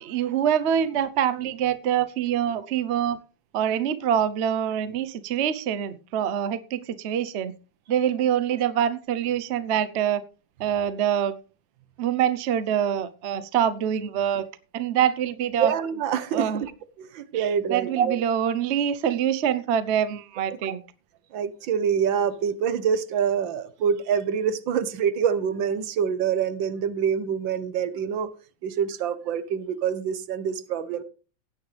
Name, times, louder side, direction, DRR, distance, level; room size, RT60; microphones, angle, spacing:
voice 1, 0.0-3.2 3.5-7.5 7.9-10.2 10.6-11.4 12.0-14.5 14.7-15.7 16.3-16.6 17.3-20.8, right 9 dB, 50° right, 0.8 m, -25 dB
voice 2, 15.6-16.7 17.0-18.2 20.6-20.8 21.3-28.3 28.6-31.0, right 7 dB, 80° right, 1.7 m, -26 dB
16.5 x 9.6 x 3.3 m
omnidirectional pair, 2.0 m